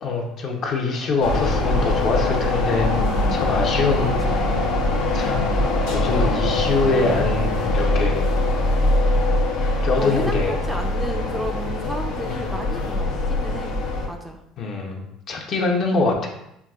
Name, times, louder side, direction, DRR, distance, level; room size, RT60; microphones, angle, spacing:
voice 1, 0.0-3.0 3.3-4.5 5.1-5.5 5.9-8.2 9.8-10.5 12.2-12.5 14.6-16.3, left 3 dB, 50° left, 2 dB, 0.7 m, -24 dB
sound 1, 1.2-14.1, left 2 dB, 85° left, 0.7 m, -22 dB
voice 2, 2.9-3.5 4.3-4.4 10.0-13.8 14.1-14.4, equal, 5° right, 3 dB, 0.4 m, -32 dB
5.6 x 2.3 x 2.3 m, 0.81 s
supercardioid pair, 105°, 0 cm